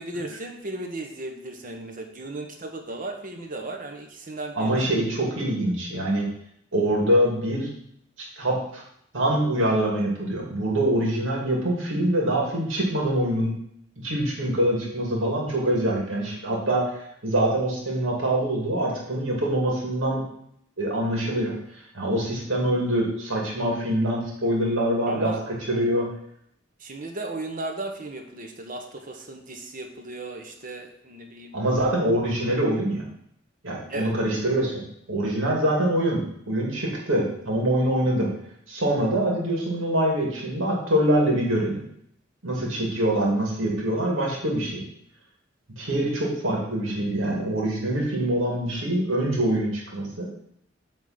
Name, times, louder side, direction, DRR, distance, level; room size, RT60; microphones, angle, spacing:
voice 1, 0.0-4.9 25.1-25.4 26.8-31.5 33.9-34.1, right 2 dB, 45° right, 4 dB, 1.1 m, -35 dB
voice 2, 4.5-6.3 6.7-7.7 8.4-8.8 9.1-13.5 14.0-20.2 20.8-21.5 21.9-26.1 31.5-33.0 33.6-34.8 35.1-38.3 38.7-41.8 42.4-44.8 45.8-50.3, right 1 dB, 85° right, -2 dB, 2.4 m, -24 dB
8.0 x 3.7 x 5.8 m, 0.72 s
head